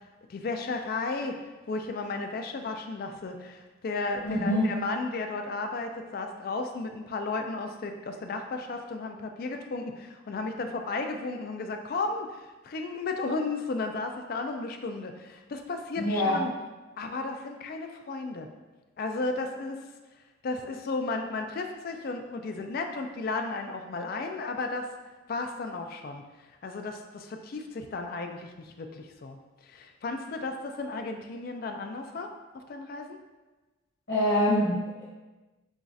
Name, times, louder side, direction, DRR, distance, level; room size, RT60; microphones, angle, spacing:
voice 1, 0.3-1.4 1.7-16.5 17.0-18.5 19.0-19.8 20.4-24.9 25.3-26.2 26.6-32.3 32.7-33.2, left 3 dB, 45° left, 5 dB, 0.3 m, -34 dB
voice 2, 4.2-4.8 16.0-16.4 34.1-35.0, left 1 dB, 60° left, -8 dB, 1.2 m, -25 dB
7.0 x 2.4 x 2.6 m, 1.2 s
head